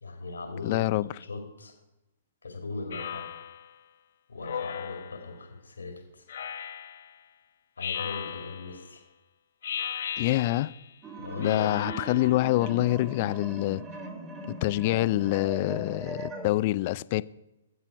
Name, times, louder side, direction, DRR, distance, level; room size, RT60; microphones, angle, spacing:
voice 1, 0.0-1.7 2.4-3.3 4.3-6.2 7.8-9.0 11.2-11.7, left 3 dB, 85° left, 1.8 m, -39 dB
voice 2, 0.6-1.1 10.2-10.7 11.4-13.8 14.5-17.2, left 17 dB, 45° left, 0.3 m, -26 dB
Speech synthesizer, 2.9-3.7 4.4-5.3 6.3-7.1 7.8-8.8 9.6-10.8 11.4-12.4, left 8 dB, 65° left, 0.8 m, -36 dB
sound 1, 11.0-16.5, right 2 dB, 20° right, 1.3 m, -40 dB
11.0 x 7.5 x 4.6 m
hypercardioid pair, 130°, 0 cm